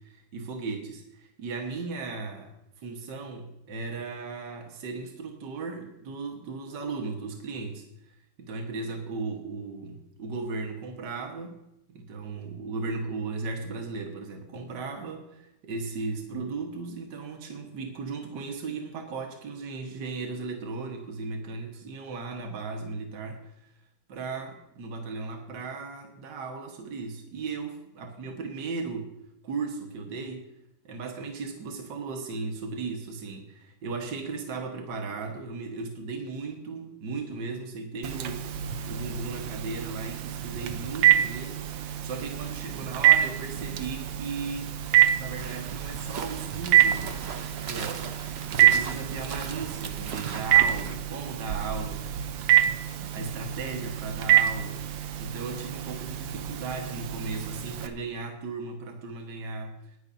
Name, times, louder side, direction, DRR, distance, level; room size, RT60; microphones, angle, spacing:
voice 1, 0.0-2.5 2.8-7.9 8.4-11.6 11.9-23.7 24.1-29.1 29.4-30.5 30.8-38.5 38.9-44.7 45.2-47.2 47.7-48.2 48.5-52.1 52.9-60.0, right 4 dB, 65° right, 3 dB, 2.1 m, -36 dB
Telephone, 38.0-57.9, right 11 dB, 80° right, 1.6 m, -26 dB
sound 1, 45.4-51.0, right 6 dB, 50° right, 0.8 m, -39 dB
19.5 x 11.0 x 2.7 m, 0.84 s
omnidirectional pair, 2.1 m